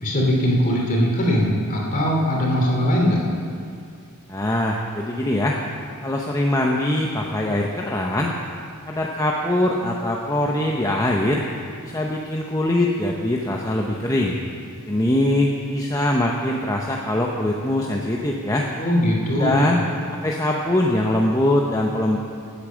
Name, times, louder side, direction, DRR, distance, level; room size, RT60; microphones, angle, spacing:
voice 1, 0.0-3.2 18.8-19.8, equal, 40° left, -1 dB, 2.7 m, -20 dB
voice 2, 4.3-5.6 6.0-8.3 8.9-11.4 11.8-14.4 14.9-18.7 19.4-19.8 20.2-22.2, left 1 dB, 15° left, -1 dB, 0.7 m, -22 dB
16.5 x 8.6 x 6.2 m, 2.3 s
head